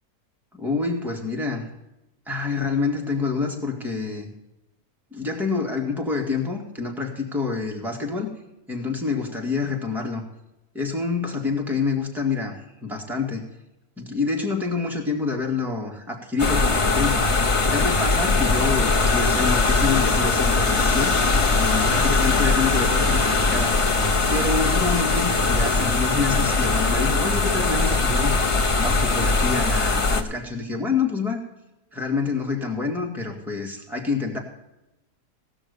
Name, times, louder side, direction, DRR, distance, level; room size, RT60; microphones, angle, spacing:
voice 1, 0.6-1.7 2.3-4.3 5.1-8.3 8.7-10.2 10.7-12.5 12.8-13.4 14.0-17.2 17.7-21.1 21.6-23.8 24.3-28.4 28.8-31.4 31.9-34.4, left 4 dB, ahead, 0 dB, 1.9 m, -27 dB
sound 1, 16.4-30.2, left 3 dB, 25° left, 0.7 m, -21 dB
17.5 x 6.2 x 6.7 m, 0.94 s
omnidirectional pair, 1.6 m